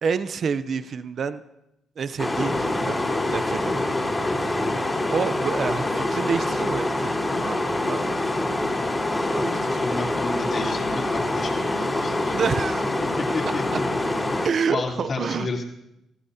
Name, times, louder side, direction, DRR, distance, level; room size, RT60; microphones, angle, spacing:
voice 1, 0.0-1.4 2.0-3.0 3.3-4.0 5.1-8.1 9.3-10.1 12.3-12.9 13.7-13.8 14.4-15.5, right 6 dB, 50° right, 13 dB, 0.6 m, -28 dB
sound 1, 2.2-14.5, left 2 dB, 15° left, 3.3 m, -25 dB
voice 2, 9.7-12.4 13.3-13.6 14.3-15.6, left 3 dB, 45° left, -1 dB, 3.6 m, -31 dB
25.5 x 15.0 x 2.8 m, 0.86 s
cardioid pair, 90°, 0 cm